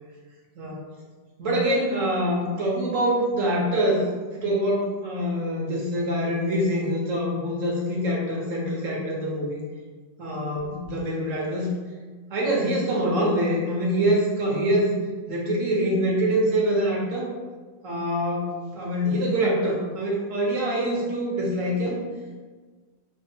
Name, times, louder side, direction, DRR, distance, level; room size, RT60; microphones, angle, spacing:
voice 1, 1.4-4.1 4.3-9.6 10.2-11.7 12.3-14.9 15.3-17.3 17.8-22.0, equal, 60° right, -3 dB, 0.9 m, -25 dB
5.9 x 2.1 x 2.7 m, 1.4 s
omnidirectional pair, 2.0 m